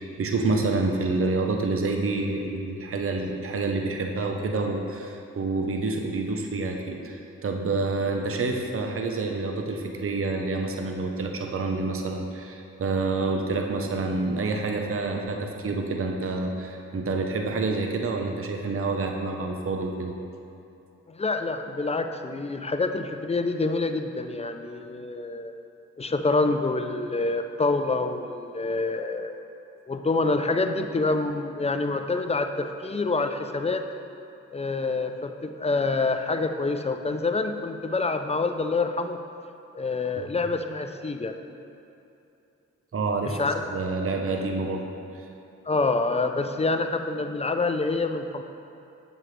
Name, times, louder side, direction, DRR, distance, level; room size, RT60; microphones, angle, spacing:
voice 1, 0.0-20.1 27.1-27.3 40.2-40.3 42.9-43.4 43.7-44.8, right 3 dB, 40° right, 2 dB, 0.9 m, -28 dB
voice 2, 21.1-25.5 26.0-29.4 29.9-33.9 34.5-39.2 39.8-41.4 43.2-43.6 45.7-48.4, left 3 dB, 20° left, 7 dB, 0.6 m, -27 dB
7.5 x 7.4 x 3.3 m, 2.8 s
hypercardioid pair, 40°, 33 cm